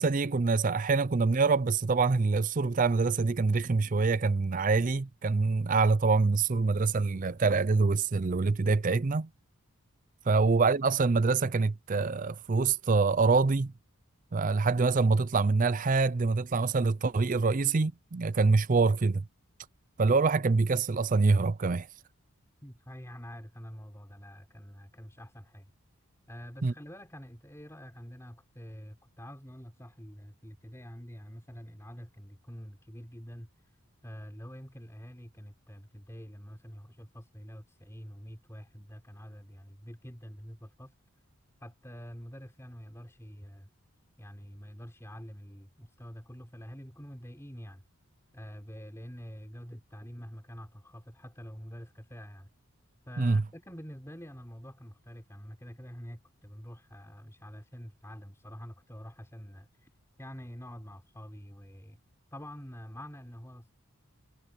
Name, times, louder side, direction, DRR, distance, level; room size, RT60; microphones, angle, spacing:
voice 1, 0.0-9.3 10.3-13.7 14.3-19.2 20.0-21.9 26.6-26.7 53.2-53.4, right 4 dB, 35° right, 0.4 m, -25 dB
voice 2, 22.6-25.7 26.3-33.5 34.0-40.9 41.6-43.7 44.2-47.8 48.3-52.5 53.1-59.9 60.2-62.0 62.3-63.7, equal, 10° left, 4.7 m, -46 dB
head